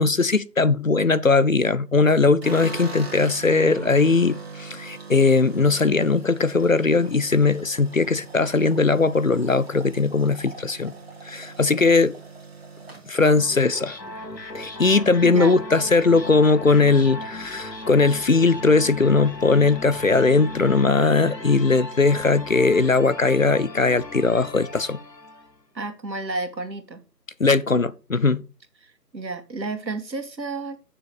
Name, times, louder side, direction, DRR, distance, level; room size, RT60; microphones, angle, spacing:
voice 1, 0.0-10.9 11.2-12.2 13.1-14.0 14.5-25.0 27.4-28.4, left 3 dB, 55° left, 0.5 m, -19 dB
sound 1, 2.4-14.7 15.0-15.6 15.9-16.0 16.3-17.0, right 4 dB, 35° right, 2.2 m, -41 dB
sound 2, 13.3-25.6, left 1 dB, 75° left, 2.3 m, -37 dB
voice 2, 15.2-15.6 25.7-27.0 28.8-30.8, right 3 dB, 85° right, 2.1 m, -31 dB
7.7 x 6.7 x 6.8 m
figure-of-eight pair, 175°, 50 cm